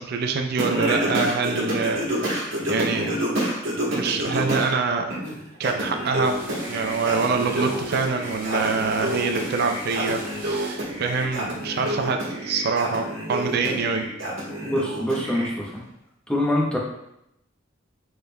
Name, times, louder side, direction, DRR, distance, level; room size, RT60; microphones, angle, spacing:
voice 1, 0.0-3.1 3.9-5.2 5.6-6.4 6.7-14.0, right 4 dB, 55° right, 5 dB, 0.4 m, -25 dB
Singing, 0.6-4.7 5.1-15.5, right 1 dB, 80° right, 1.3 m, -28 dB
sound 1, 6.2-11.7, right 1 dB, 15° right, 1.2 m, -41 dB
voice 2, 14.6-15.8 16.3-16.8, left 1 dB, 5° left, -3 dB, 0.8 m, -25 dB
6.3 x 3.4 x 2.2 m, 0.81 s
head